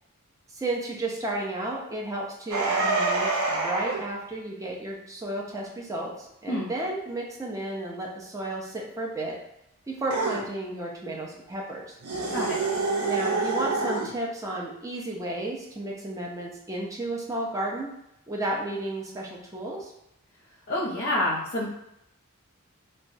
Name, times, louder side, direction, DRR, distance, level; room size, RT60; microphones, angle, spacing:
voice 1, 0.5-9.4 9.9-12.0 13.0-17.9 18.3-19.9, right 1 dB, 15° right, -2 dB, 0.5 m, -33 dB
sound 1, 2.5-4.0 10.1-10.4 12.0-14.1, right 3 dB, 85° right, 0.5 m, -26 dB
voice 2, 20.7-21.7, left 1 dB, 45° left, -5 dB, 0.6 m, -27 dB
2.9 x 2.2 x 2.6 m, 0.80 s
head